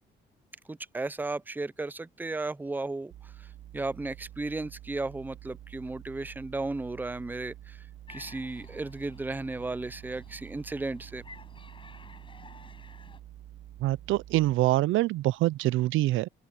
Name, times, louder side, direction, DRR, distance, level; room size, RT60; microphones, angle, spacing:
voice 1, 0.7-3.1 3.7-7.8 8.1-11.2, right 2 dB, 10° right, 0.5 m, -34 dB
sound 1, 3.1-14.5, right 13 dB, 65° right, 0.8 m, -48 dB
sound 2, 8.1-13.2, left 3 dB, 25° left, 6.2 m, -53 dB
voice 2, 13.8-16.3, right 16 dB, 85° right, 0.4 m, -25 dB
open air
cardioid pair, 90°, 20 cm